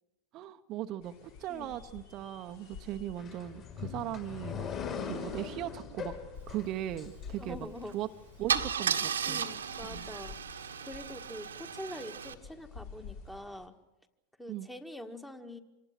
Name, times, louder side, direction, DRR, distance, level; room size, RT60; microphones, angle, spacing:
voice 1, 0.3-4.7 5.0-6.2 6.5-8.1 8.4-9.4 9.9-10.1 14.5-14.7, right 12 dB, 40° right, 7 dB, 0.9 m, -38 dB
sound 1, 1.0-13.7, left 5 dB, 55° left, 4.2 m, -51 dB
sound 2, 3.2-7.9, left 6 dB, 35° left, 5.9 m, -41 dB
voice 2, 7.4-7.9 9.3-13.7 14.4-15.6, left 1 dB, 5° left, 6 dB, 1.8 m, -45 dB
Car / Engine starting / Idling, 7.8-8.0 8.5-12.3, right 7 dB, 80° right, 1.4 m, -34 dB
26.5 x 19.0 x 7.6 m, 1.0 s
figure-of-eight pair, 90°, 0 cm